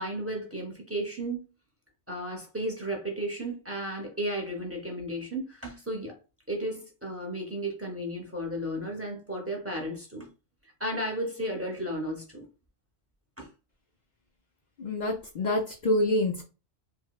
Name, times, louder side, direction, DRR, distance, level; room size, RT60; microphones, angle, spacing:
voice 1, 0.0-1.4 2.1-6.1 6.5-10.3 10.8-12.5 13.4-13.5, right 1 dB, 15° right, 0.5 m, -34 dB
voice 2, 14.8-16.4, left 1 dB, 85° left, 0.4 m, -27 dB
4.5 x 2.0 x 2.3 m
omnidirectional pair, 1.4 m